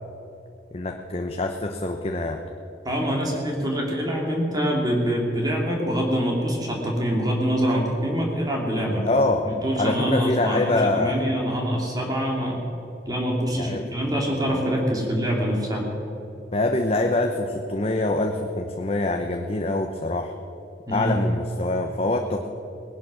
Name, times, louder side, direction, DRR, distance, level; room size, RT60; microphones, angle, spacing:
voice 1, 0.7-2.4 9.0-9.5 9.8-11.2 13.6-13.9 14.5-14.6 16.5-20.3 20.9-22.5, left 2 dB, 35° left, 4 dB, 0.8 m, -25 dB
voice 2, 2.8-9.2 9.5-12.6 13.1-15.9 20.9-21.2, equal, 20° right, -1 dB, 2.5 m, -25 dB
19.0 x 11.0 x 6.2 m, 2.9 s
head